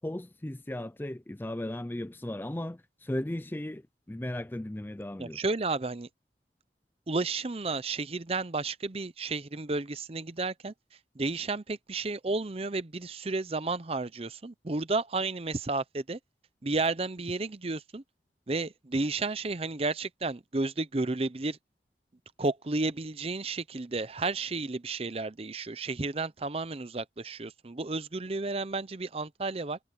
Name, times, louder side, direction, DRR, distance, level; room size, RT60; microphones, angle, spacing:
voice 1, 0.0-3.8 4.1-5.4, left 1 dB, 10° left, 0.4 m, -36 dB
voice 2, 5.2-6.1 7.1-10.7 11.2-16.2 16.6-18.0 18.5-21.6 22.4-29.8, right 3 dB, 35° right, 0.6 m, -32 dB
head